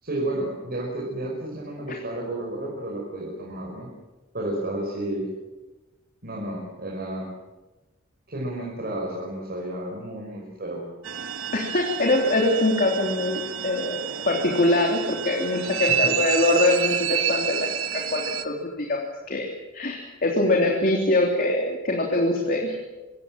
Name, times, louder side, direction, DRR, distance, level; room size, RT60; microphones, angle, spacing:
voice 1, 0.0-3.9 4.3-5.3 6.2-7.3 8.3-10.8 15.7-16.1, right 1 dB, 50° right, -2 dB, 5.4 m, -31 dB
sound 1, 11.0-18.4, right 8 dB, 85° right, 1.5 m, -29 dB
voice 2, 11.5-22.7, left 2 dB, 45° left, 0 dB, 3.4 m, -23 dB
26.0 x 24.0 x 7.6 m, 1.1 s
head